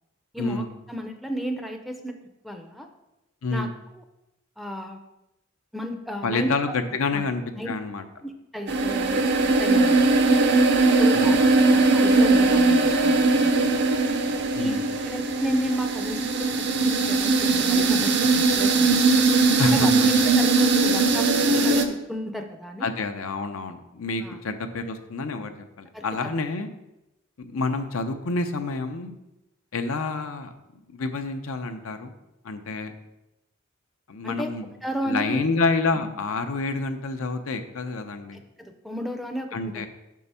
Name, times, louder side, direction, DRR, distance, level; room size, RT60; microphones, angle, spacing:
voice 1, 0.3-2.2 2.4-2.9 3.5-3.7 4.0-4.1 4.6-5.0 5.7-6.8 7.1-7.2 7.5-7.7 8.2-10.0 11.0-11.4 11.6-13.7 14.6-19.2 19.7-22.9 24.2-24.4 25.9-26.0 34.2-34.5 34.8-35.4 35.9-36.0 38.3-39.8, equal, ahead, 5 dB, 0.5 m, -33 dB
voice 2, 6.2-8.1 11.1-11.4 14.5-14.8 19.6-20.1 22.8-26.7 27.4-29.2 29.7-30.5 30.9-32.1 32.4-32.9 34.1-34.7 35.0-38.4 39.5-39.9, left 3 dB, 75° left, 7 dB, 0.6 m, -28 dB
sound 1, 8.7-21.9, right 3 dB, 55° right, 0.6 m, -20 dB
6.0 x 4.7 x 5.5 m, 0.93 s
head